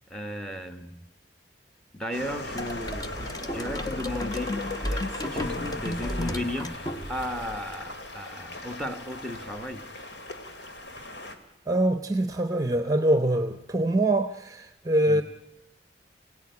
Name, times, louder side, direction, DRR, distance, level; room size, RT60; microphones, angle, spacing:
voice 1, 0.1-1.1 1.9-9.9 15.1-15.2, left 1 dB, 5° left, 1.3 m, -35 dB
sound 1, 2.1-11.4, left 1 dB, 75° left, 2.5 m, -39 dB
sound 2, 2.6-7.4, left 1 dB, 20° left, 1.1 m, -33 dB
voice 2, 11.7-15.2, right 1 dB, 20° right, 0.9 m, -24 dB
26.5 x 17.0 x 9.6 m
head